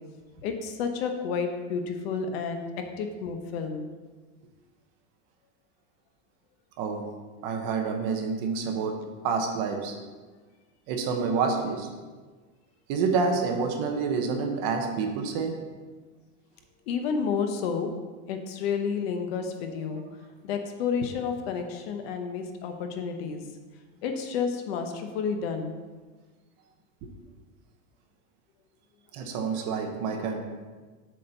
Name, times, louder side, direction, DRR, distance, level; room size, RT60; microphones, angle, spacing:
voice 1, 0.4-3.9 16.9-17.9 18.3-20.0 20.4-23.4 24.0-25.7, left 6 dB, 50° left, 5 dB, 0.9 m, -30 dB
voice 2, 6.8-7.1 7.4-9.9 10.9-11.9 12.9-15.6 19.8-20.0 27.0-27.1 29.1-30.4, right 5 dB, 35° right, 4 dB, 0.9 m, -28 dB
7.6 x 4.3 x 6.7 m, 1.4 s
supercardioid pair, 170°, 40 cm